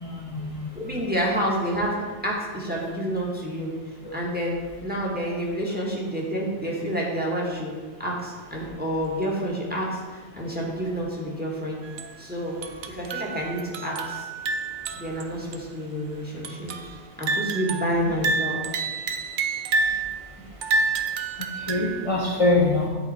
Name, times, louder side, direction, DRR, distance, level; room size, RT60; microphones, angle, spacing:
voice 1, 0.0-0.7 4.0-4.1 18.1-18.2 21.4-22.9, left 2 dB, 30° left, -4 dB, 0.8 m, -24 dB
voice 2, 0.7-3.7 4.1-7.7 8.0-11.8 12.2-12.6 12.9-14.3 14.9-16.7 17.2-18.7, equal, 10° right, -3 dB, 1.4 m, -29 dB
sound 1, 11.8-12.2 12.6-15.2 15.5-15.6 16.4-16.9 17.2-20.1 20.6-22.1, right 3 dB, 60° right, 0.5 m, -28 dB
10.5 x 4.0 x 4.2 m, 1.4 s
omnidirectional pair, 1.3 m